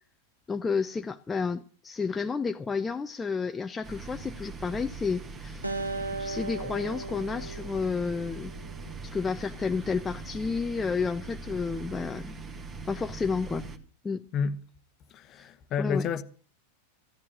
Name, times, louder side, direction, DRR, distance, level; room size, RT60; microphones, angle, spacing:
voice 1, 0.5-5.6 6.2-8.5 9.0-12.4 12.9-13.7 14.0-14.2 15.3-15.5 15.8-16.1, left 5 dB, 15° left, 0.6 m, -31 dB
sound 1, 3.8-13.8, right 4 dB, 20° right, 1.7 m, -41 dB
Acoustic guitar, 5.6-9.0, right 2 dB, 90° right, 1.0 m, -37 dB
voice 2, 15.1-16.2, left 6 dB, 35° left, 1.0 m, -29 dB
15.0 x 11.0 x 6.2 m
figure-of-eight pair, 90°, 0 cm